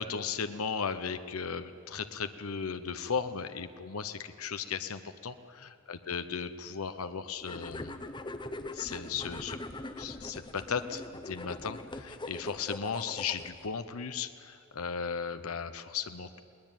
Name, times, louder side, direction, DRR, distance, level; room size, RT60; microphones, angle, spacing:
voice 1, 0.0-7.9 8.7-9.6 10.0-16.4, left 6 dB, 85° left, 10 dB, 0.9 m, -36 dB
sound 1, 7.4-13.7, left 2 dB, 20° left, 0.9 m, -42 dB
21.0 x 19.0 x 9.1 m, 2.6 s
head